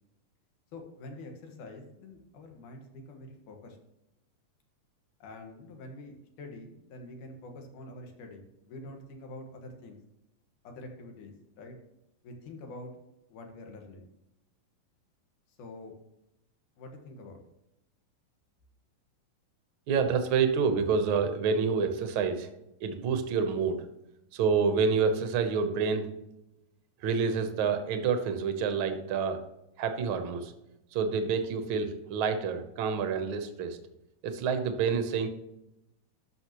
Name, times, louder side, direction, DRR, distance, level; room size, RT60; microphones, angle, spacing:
voice 1, 0.7-3.8 5.2-10.0 10.6-11.8 12.2-12.9 13.3-14.1 15.5-15.9 16.8-17.4, left 2 dB, 75° left, 3 dB, 3.0 m, -46 dB
voice 2, 19.9-22.5 22.8-23.9 24.3-26.1 27.0-29.4 29.8-30.5 30.9-33.8 34.2-35.3, right 5 dB, 70° right, 8 dB, 1.2 m, -28 dB
12.5 x 6.6 x 3.0 m, 0.88 s
omnidirectional pair, 3.7 m